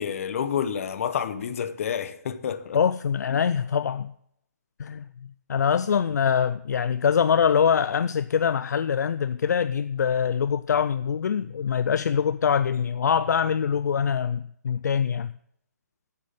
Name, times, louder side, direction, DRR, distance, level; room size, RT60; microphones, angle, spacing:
voice 1, 0.0-2.8 3.3-3.4, left 8 dB, 50° left, 0.9 m, -29 dB
voice 2, 2.7-4.1 4.8-15.3, left 7 dB, 70° left, 0.4 m, -24 dB
7.7 x 7.6 x 7.3 m
hypercardioid pair, 145°, 10 cm